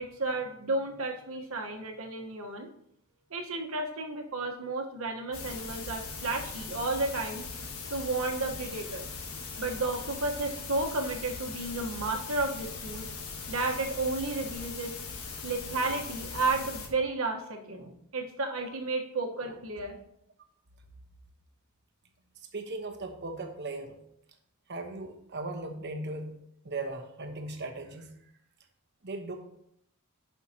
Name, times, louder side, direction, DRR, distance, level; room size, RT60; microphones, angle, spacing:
voice 1, 0.0-2.7 3.3-7.4 7.9-9.0 9.6-13.0 13.5-14.9 15.4-20.0, right 3 dB, 75° right, 2 dB, 1.3 m, -32 dB
sound 1, 5.3-16.9, left 4 dB, 85° left, 1.3 m, -40 dB
voice 2, 22.4-24.0 24.7-26.4 26.6-28.1 29.0-29.4, right 2 dB, 55° right, 5 dB, 1.1 m, -38 dB
11.0 x 5.8 x 2.9 m, 0.73 s
head